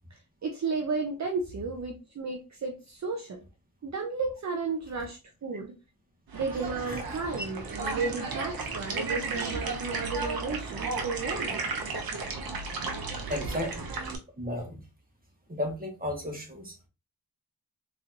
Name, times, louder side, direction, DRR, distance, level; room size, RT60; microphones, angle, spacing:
voice 1, 0.4-3.4 3.8-5.7 6.3-11.6 13.6-13.7, right 4 dB, 50° right, 0.6 m, -33 dB
sound 1, 6.3-14.2, right 3 dB, 85° right, 0.9 m, -34 dB
voice 2, 6.8-7.4 13.3-13.8 14.4-14.8 15.5-16.9, left 1 dB, 25° right, 1.5 m, -35 dB
4.0 x 3.1 x 2.5 m
cardioid pair, 70°, 35 cm